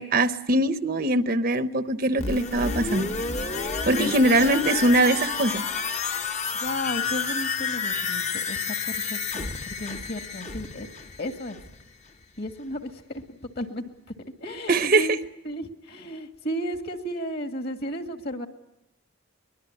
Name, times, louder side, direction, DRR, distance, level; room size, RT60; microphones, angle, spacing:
voice 1, 0.0-3.1 3.8-5.6 14.7-15.1, right 2 dB, 45° right, 11 dB, 0.9 m, -22 dB
sound 1, 2.2-11.9 12.2-12.3, left 5 dB, 35° left, 1.0 m, -30 dB
voice 2, 6.5-10.9 11.2-11.6 12.4-13.8 14.4-15.2 15.4-18.5, equal, 50° left, 6 dB, 2.1 m, -33 dB
23.5 x 21.0 x 9.7 m, 0.87 s
head